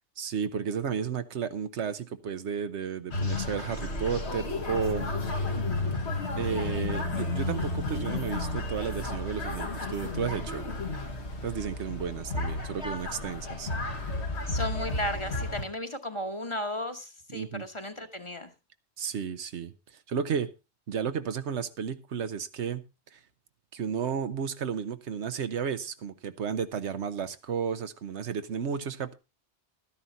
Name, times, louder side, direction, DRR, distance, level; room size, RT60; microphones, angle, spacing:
voice 1, 0.2-5.1 6.4-10.7 11.4-13.7 17.3-17.6 19.0-20.5 20.9-22.8 23.1-23.2 23.7-29.1, right 7 dB, 80° right, 11 dB, 1.2 m, -33 dB
sound 1, 3.1-15.6, left 2 dB, 70° left, 1.7 m, -32 dB
voice 2, 14.5-18.5, left 1 dB, 30° left, 7 dB, 1.2 m, -35 dB
12.5 x 10.0 x 4.1 m, 0.28 s
omnidirectional pair, 1.1 m